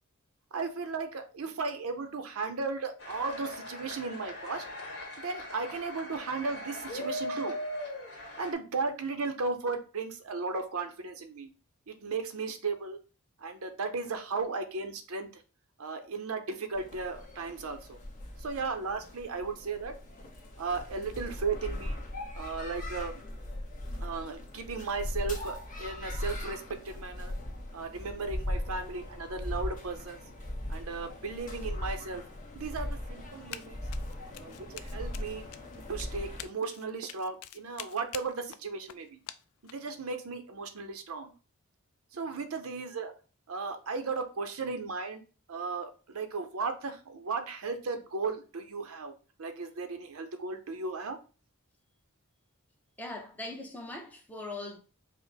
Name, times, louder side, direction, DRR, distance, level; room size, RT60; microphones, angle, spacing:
voice 1, 0.5-4.6 5.2-7.6 8.4-11.5 11.9-13.0 13.4-15.4 15.8-18.0 18.4-20.0 20.6-22.0 22.3-23.2 24.0-27.3 27.7-30.2 30.7-32.2 32.5-33.8 34.4-35.4 35.9-39.2 39.6-41.3 42.1-43.1 43.5-45.2 45.5-49.1 49.4-51.2, right 4 dB, 70° right, 0.6 m, -35 dB
sound 1, 3.0-8.5, left 1 dB, 60° left, 1.5 m, -39 dB
sound 2, 16.7-36.4, left 1 dB, 40° left, 1.1 m, -39 dB
Run, 33.5-33.7 33.9-39.9, left 12 dB, 85° left, 0.4 m, -46 dB
voice 2, 53.0-54.8, left 2 dB, 5° left, 0.7 m, -40 dB
5.0 x 2.1 x 3.9 m
head